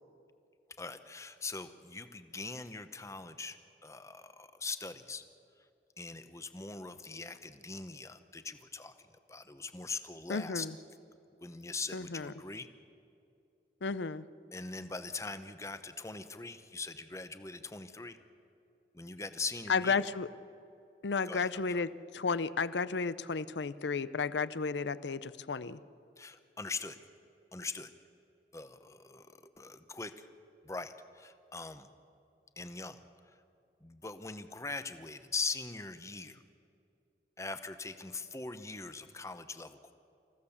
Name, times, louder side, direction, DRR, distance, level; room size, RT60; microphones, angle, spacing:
voice 1, 0.8-5.2 6.0-8.9 9.3-10.7 11.4-12.7 14.5-18.2 18.9-20.1 21.2-21.8 26.2-27.0 27.5-27.9 28.5-30.3 30.6-31.9 32.6-33.0 33.8-36.4 37.4-39.9, left 4 dB, 15° left, 10 dB, 0.9 m, -41 dB
voice 2, 10.3-10.7 11.9-12.3 13.8-14.3 19.7-20.3 21.0-25.8, left 5 dB, 85° left, 16 dB, 0.6 m, -33 dB
27.0 x 15.5 x 7.2 m, 2.6 s
head